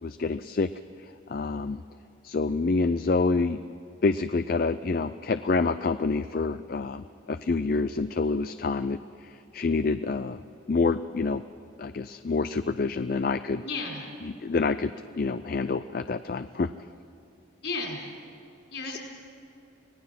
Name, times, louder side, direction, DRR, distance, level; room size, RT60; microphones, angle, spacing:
voice 1, 0.0-0.7 1.0-1.8 2.2-3.6 4.0-10.4 10.7-11.4 11.8-13.6 14.2-16.7 18.9-19.0, left 3 dB, 50° left, 12 dB, 0.4 m, -27 dB
voice 2, 13.6-14.0 17.6-18.0 18.7-19.0, left 3 dB, 70° left, -1 dB, 5.0 m, -33 dB
25.0 x 18.5 x 6.0 m, 2.8 s
head